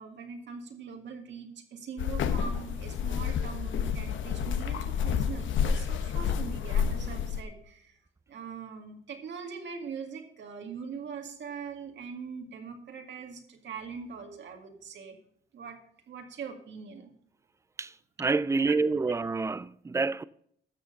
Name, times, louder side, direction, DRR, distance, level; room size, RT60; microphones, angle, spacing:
voice 1, 0.0-8.0 8.3-15.2 15.5-15.8 16.1-17.1 18.7-19.1, right 6 dB, 65° right, 2.1 m, -42 dB
sound 1, 2.0-7.4, left 7 dB, 75° left, 1.0 m, -29 dB
voice 2, 18.2-20.2, right 3 dB, 15° right, 0.4 m, -27 dB
12.5 x 6.5 x 5.3 m
cardioid pair, 90°, 20 cm